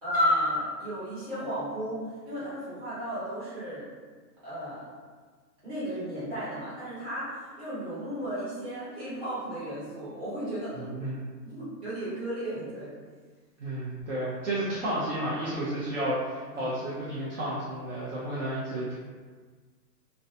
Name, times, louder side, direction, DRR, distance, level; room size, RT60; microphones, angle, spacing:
voice 1, 0.0-3.9 4.4-4.9 5.6-10.9 11.4-12.9 16.5-16.7, equal, 20° right, -12 dB, 1.0 m, -33 dB
voice 2, 13.6-18.9, right 1 dB, 50° right, -8 dB, 0.5 m, -32 dB
2.3 x 2.1 x 2.6 m, 1.5 s
hypercardioid pair, 165°, 50 cm